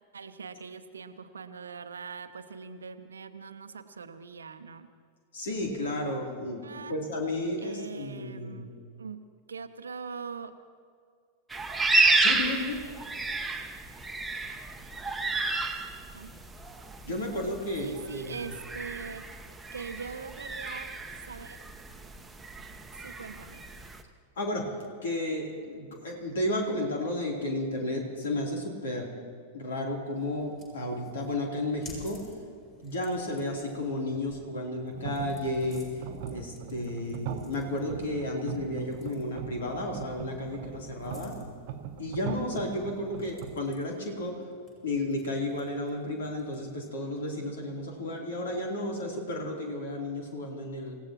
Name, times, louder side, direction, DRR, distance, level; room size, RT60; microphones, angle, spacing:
voice 1, 0.1-4.9 6.6-7.0 7.6-8.7 9.0-10.5 16.1-16.3 17.1-17.3 17.8-19.3 19.7-20.9 21.2-21.6 23.0-23.6, right 5 dB, 70° right, 10 dB, 0.8 m, -42 dB
voice 2, 5.3-8.6 12.2-12.8 17.0-18.5 24.4-24.7 25.0-29.1 29.5-32.2 32.8-35.9 36.3-41.4 42.0-44.3 44.8-51.0, left 1 dB, 60° left, 0 dB, 3.3 m, -33 dB
sound 1, 11.5-24.0, right 3 dB, 5° right, 1.1 m, -31 dB
sound 2, 30.1-46.8, left 2 dB, 30° left, 5.6 m, -55 dB
sound 3, 34.9-43.5, right 8 dB, 50° right, 1.0 m, -41 dB
27.5 x 16.5 x 3.0 m, 2.2 s
figure-of-eight pair, 90°, 0 cm